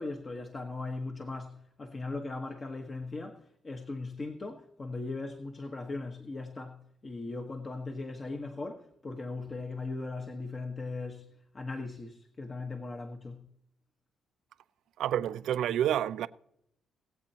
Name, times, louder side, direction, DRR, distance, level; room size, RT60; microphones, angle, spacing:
voice 1, 0.0-13.5, left 3 dB, 35° left, 1.2 m, -39 dB
voice 2, 15.0-16.3, right 10 dB, 80° right, 0.5 m, -29 dB
20.0 x 8.0 x 2.9 m
cardioid pair, 90°, 0 cm